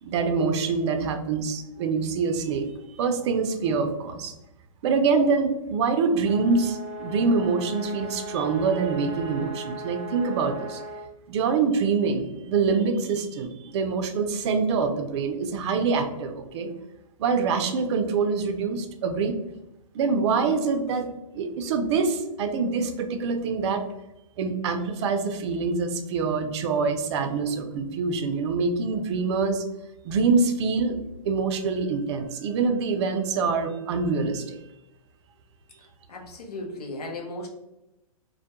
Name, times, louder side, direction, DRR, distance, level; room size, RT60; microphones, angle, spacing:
voice 1, 0.0-4.3 4.8-10.8 11.3-16.7 17.2-19.4 19.9-21.1 21.3-23.9 24.4-29.6 30.0-31.0 31.2-34.6, right 4 dB, 50° right, 6 dB, 0.4 m, -25 dB
sound 1, 6.2-11.1, right 1 dB, 5° right, 0.8 m, -37 dB
voice 2, 36.1-37.5, left 2 dB, 85° left, 1 dB, 0.7 m, -36 dB
2.2 x 2.1 x 2.7 m, 0.92 s
hypercardioid pair, 125°, 19 cm